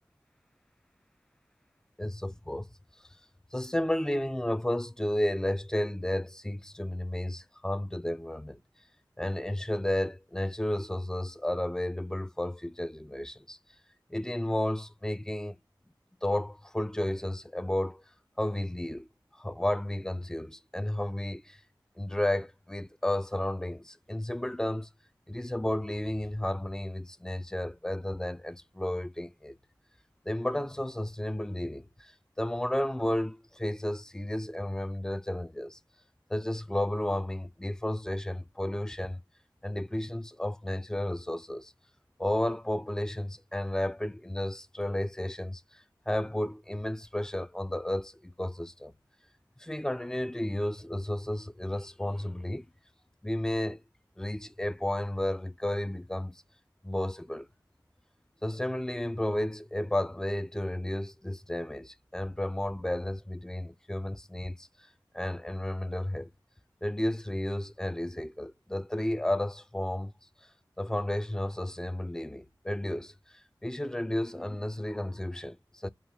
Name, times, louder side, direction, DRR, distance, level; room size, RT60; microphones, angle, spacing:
voice 1, 2.0-2.7 3.5-8.6 9.2-13.6 14.1-15.6 16.2-18.0 18.4-19.1 19.4-21.6 22.0-24.9 25.3-29.6 30.3-32.1 32.4-35.8 36.3-39.2 39.6-41.7 42.2-45.6 46.1-48.9 49.6-52.6 53.2-53.8 54.2-56.4 56.8-57.5 58.4-64.7 65.1-66.3 66.8-70.1 70.8-73.1 73.6-75.9, left 1 dB, 5° left, 0.3 m, -32 dB
2.8 x 2.3 x 3.5 m
wide cardioid pair, 40°, 8 cm